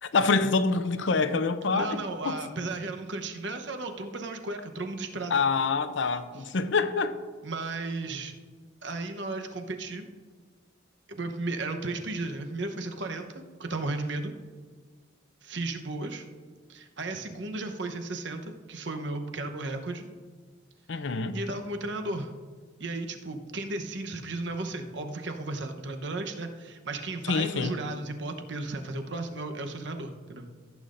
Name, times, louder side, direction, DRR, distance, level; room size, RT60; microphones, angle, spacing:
voice 1, 0.0-2.0 2.3-2.4 5.3-7.2 20.9-21.4 27.3-27.7, left 4 dB, 65° left, 0.6 m, -26 dB
voice 2, 1.7-5.3 7.4-8.3 8.8-10.1 11.1-14.3 15.4-16.2 16.7-20.1 21.0-22.3 22.8-30.5, right 2 dB, 60° right, 0.9 m, -34 dB
15.0 x 8.5 x 2.6 m
head